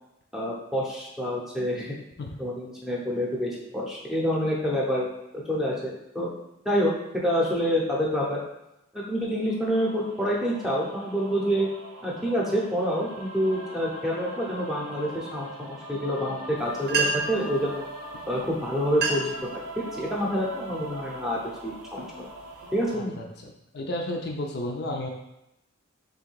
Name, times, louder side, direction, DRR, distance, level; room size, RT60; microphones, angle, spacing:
voice 1, 0.3-2.0 2.4-6.3 6.6-6.9 7.2-8.4 8.9-11.7 12.0-17.8 18.3-22.3 22.7-23.1, equal, ahead, -4 dB, 0.7 m, -27 dB
sound 1, 9.5-23.0, right 1 dB, 80° right, 0.7 m, -41 dB
sound 2, 16.6-16.7 16.8-17.5 18.3-18.5 18.8-19.4 19.9-20.3 20.9-21.2 21.7-22.9, right 4 dB, 50° right, 0.7 m, -29 dB
voice 2, 22.9-25.1, left 1 dB, 50° left, 1 dB, 0.4 m, -33 dB
3.6 x 2.8 x 4.5 m, 0.88 s
head